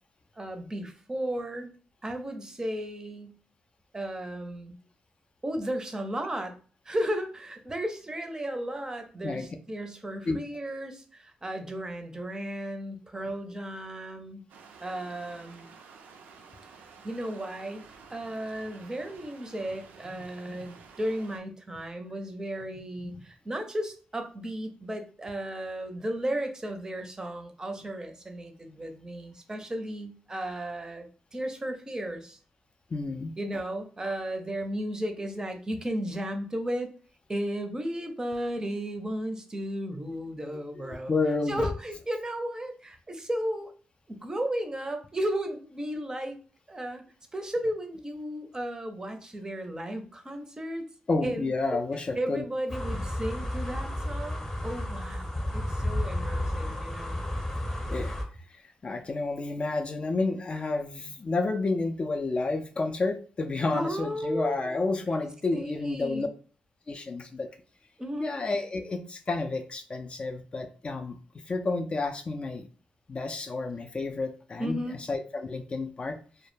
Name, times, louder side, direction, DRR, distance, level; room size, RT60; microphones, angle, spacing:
voice 1, 0.4-1.7 2.0-3.4 3.9-4.7 5.4-6.5 6.8-14.4 14.8-15.7 17.0-32.4 33.4-36.9 37.3-41.1 41.5-43.7 44.1-46.3 46.7-47.0 47.3-50.9 51.2-51.5 52.2-57.2 63.7-64.8 65.5-66.3 68.0-68.3 74.6-75.0, right 1 dB, 25° right, 5 dB, 0.5 m, -34 dB
sound 1, 14.5-21.4, right 5 dB, 90° right, 0.4 m, -51 dB
voice 2, 32.9-33.4 40.8-41.7 51.1-52.4 57.9-58.1 58.5-66.3 66.9-67.5 68.2-72.7 73.1-76.2, left 3 dB, 40° left, 6 dB, 0.3 m, -30 dB
sound 2, 52.7-58.2, left 1 dB, 15° left, 0.8 m, -32 dB
2.1 x 2.0 x 3.1 m, 0.40 s
cardioid pair, 70°, 3 cm